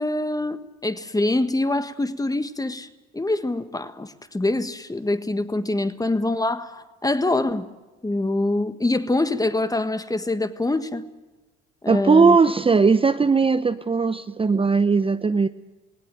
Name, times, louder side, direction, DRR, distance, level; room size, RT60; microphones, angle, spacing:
voice 1, 0.0-2.9 3.1-7.7 8.0-11.0 11.8-12.4, left 2 dB, 10° left, 1.5 m, -25 dB
voice 2, 11.9-15.5, right 4 dB, 20° right, 0.8 m, -18 dB
19.5 x 17.5 x 9.0 m
supercardioid pair, 75°, 30 cm